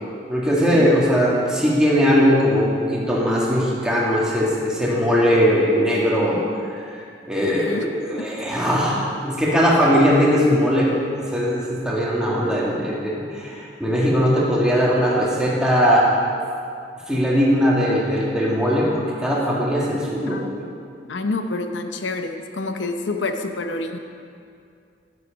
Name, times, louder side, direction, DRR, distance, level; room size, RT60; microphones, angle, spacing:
voice 1, 0.3-6.4 6.7-6.8 7.3-16.1 17.1-20.4, equal, 5° right, -5 dB, 1.8 m, -19 dB
voice 2, 20.3-20.7 21.1-24.0, left 3 dB, 80° left, 6 dB, 0.7 m, -28 dB
11.5 x 8.0 x 5.2 m, 2.4 s
head